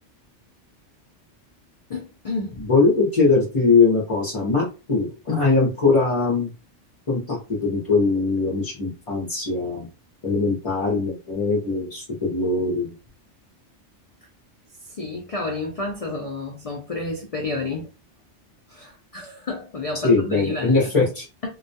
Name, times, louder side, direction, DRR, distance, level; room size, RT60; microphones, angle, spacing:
voice 1, 1.9-2.6 14.8-17.9 18.7-20.9, left 3 dB, 70° left, 0.3 m, -30 dB
voice 2, 2.7-6.5 7.1-9.9 10.2-12.9 20.0-21.2, left 3 dB, 35° left, 0.7 m, -21 dB
2.3 x 2.2 x 2.6 m
omnidirectional pair, 1.2 m